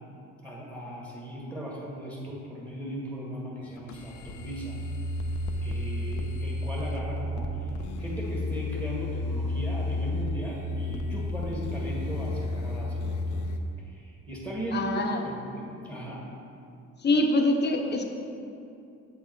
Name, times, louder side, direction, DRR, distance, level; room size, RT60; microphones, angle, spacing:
voice 1, 0.4-4.8 5.6-13.2 13.8-16.3, right 1 dB, 15° right, -4 dB, 1.7 m, -37 dB
sound 1, 3.6-13.6, left 2 dB, 80° left, 0.7 m, -32 dB
voice 2, 14.7-15.2 17.0-18.0, left 2 dB, 35° left, 3 dB, 0.9 m, -24 dB
8.0 x 5.6 x 4.6 m, 2.6 s
cardioid pair, 90°, 30 cm